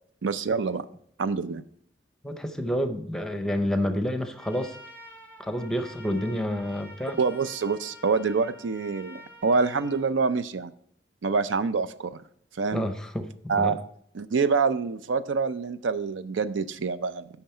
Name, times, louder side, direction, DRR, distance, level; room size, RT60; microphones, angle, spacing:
voice 1, 0.2-0.8 1.2-1.6 7.2-10.7 11.2-12.2 12.6-12.9 13.5-13.8 14.1-17.3, right 4 dB, 85° right, 13 dB, 0.5 m, -26 dB
voice 2, 2.2-4.8 5.4-7.2 12.7-13.8, equal, 5° left, 7 dB, 0.7 m, -29 dB
Trumpet, 4.3-10.0, equal, 10° right, 1.6 m, -48 dB
9.2 x 5.8 x 4.3 m, 0.66 s
head